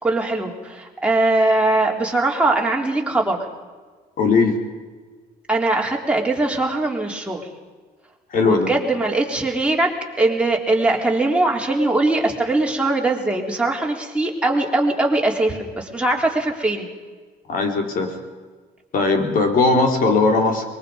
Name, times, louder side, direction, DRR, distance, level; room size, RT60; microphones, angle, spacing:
voice 1, 0.0-3.4 5.5-7.5 8.4-9.9 10.2-16.9, right 2 dB, 5° right, -1 dB, 3.7 m, -21 dB
voice 2, 4.2-4.6 8.3-8.7 17.5-18.1 18.9-20.6, left 3 dB, 55° left, 3 dB, 3.9 m, -18 dB
23.5 x 22.0 x 5.3 m, 1.4 s
cardioid pair, 110°, 17 cm